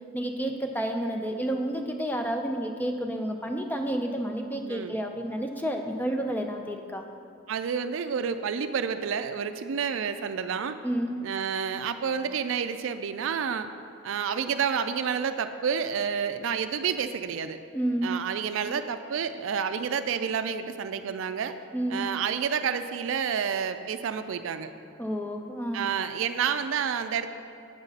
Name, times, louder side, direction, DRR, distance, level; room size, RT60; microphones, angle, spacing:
voice 1, 0.1-7.1 10.8-11.1 17.7-18.1 21.7-22.0 25.0-25.8, right 1 dB, 10° left, 4 dB, 0.4 m, -30 dB
voice 2, 4.7-5.0 7.5-10.8 11.2-13.7 14.0-17.6 18.0-21.6 21.9-24.7 25.7-27.3, right 7 dB, 70° right, 9 dB, 0.4 m, -29 dB
8.1 x 6.7 x 4.0 m, 2.5 s
head